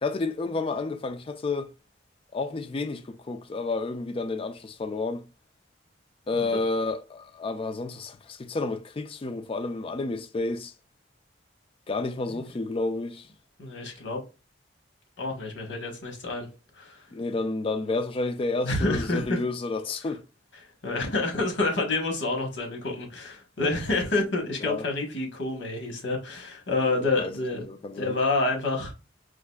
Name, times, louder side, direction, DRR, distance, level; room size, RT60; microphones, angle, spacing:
voice 1, 0.0-1.7 2.3-5.2 6.3-10.7 11.9-13.3 17.1-20.2 24.6-24.8 27.2-27.3 27.7-28.2, left 3 dB, 30° left, 0.3 m, -30 dB
voice 2, 13.6-14.2 15.2-16.5 16.8-17.0 18.6-19.4 20.8-27.7 28.0-28.9, left 2 dB, 80° left, 1.1 m, -28 dB
4.6 x 2.5 x 2.2 m
head